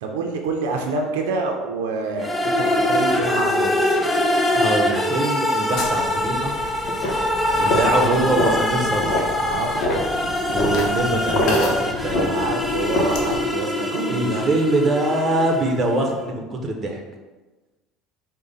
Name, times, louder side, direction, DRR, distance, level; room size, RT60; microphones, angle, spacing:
voice 1, 0.0-4.0 7.5-8.2 9.4-9.9 10.7-10.8 12.2-14.4, right 3 dB, 90° right, 2 dB, 0.5 m, -27 dB
sound 1, 2.2-16.0, left 1 dB, 10° left, 0.5 m, -23 dB
voice 2, 4.5-6.5 7.6-9.1 10.5-12.4 14.1-17.0, right 2 dB, 30° right, 1 dB, 0.8 m, -23 dB
sound 2, 5.8-13.5, left 1 dB, 60° left, 0.8 m, -26 dB
4.9 x 2.2 x 4.1 m, 1.2 s
supercardioid pair, 110°, 0 cm